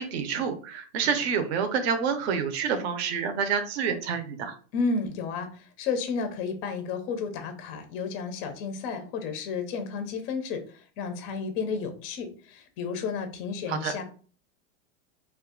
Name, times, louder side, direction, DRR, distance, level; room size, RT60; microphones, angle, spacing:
voice 1, 0.0-4.5 13.7-13.9, right 6 dB, 60° right, 7 dB, 0.7 m, -28 dB
voice 2, 4.7-14.0, left 5 dB, 30° left, 7 dB, 0.4 m, -32 dB
2.5 x 2.4 x 3.6 m, 0.40 s
supercardioid pair, 165°, 36 cm